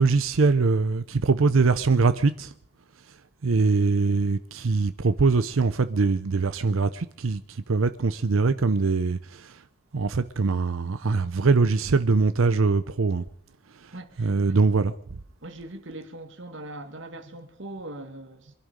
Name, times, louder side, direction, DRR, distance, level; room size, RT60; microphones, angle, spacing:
voice 1, 0.0-2.5 3.4-9.6 9.9-13.2 13.8-13.9 14.2-14.9, right 4 dB, 85° right, 0.7 m, -22 dB
voice 2, 13.9-14.3 15.4-18.5, right 1 dB, 65° right, 2.0 m, -40 dB
24.0 x 11.5 x 5.1 m
head